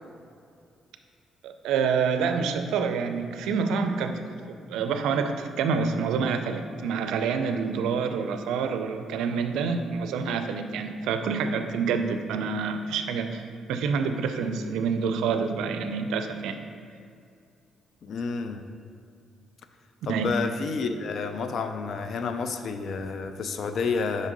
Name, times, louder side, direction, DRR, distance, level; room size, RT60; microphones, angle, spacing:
voice 1, 1.4-16.6 20.1-20.3, right 5 dB, 90° right, 7 dB, 0.4 m, -27 dB
voice 2, 18.0-18.6 20.1-24.3, left 5 dB, 60° left, 8 dB, 0.4 m, -30 dB
5.2 x 3.6 x 5.2 m, 2.4 s
cardioid pair, 90°, 0 cm